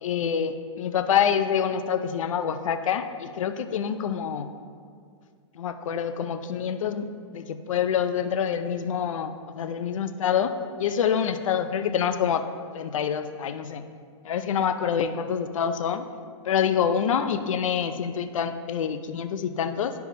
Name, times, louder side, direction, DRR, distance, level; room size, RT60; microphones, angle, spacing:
voice 1, 0.0-4.5 5.5-7.1 7.3-10.5 10.8-12.4 12.7-13.8 14.2-16.0 16.4-19.9, left 8 dB, 80° left, 9 dB, 0.5 m, -26 dB
12.0 x 4.6 x 2.7 m, 2.1 s
hypercardioid pair, 155°, 17 cm